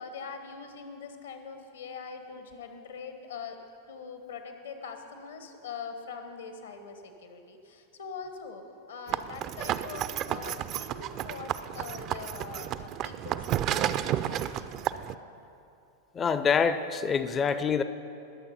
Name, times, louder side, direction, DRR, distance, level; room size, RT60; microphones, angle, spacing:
voice 1, 0.0-3.6 3.9-14.7, left 5 dB, 65° left, 7 dB, 1.1 m, -43 dB
sound 1, 9.1-15.1, right 11 dB, 35° right, 0.4 m, -32 dB
voice 2, 16.1-17.8, left 6 dB, 25° left, 12 dB, 0.5 m, -26 dB
19.5 x 6.9 x 5.5 m, 2.7 s
figure-of-eight pair, 90°, 0 cm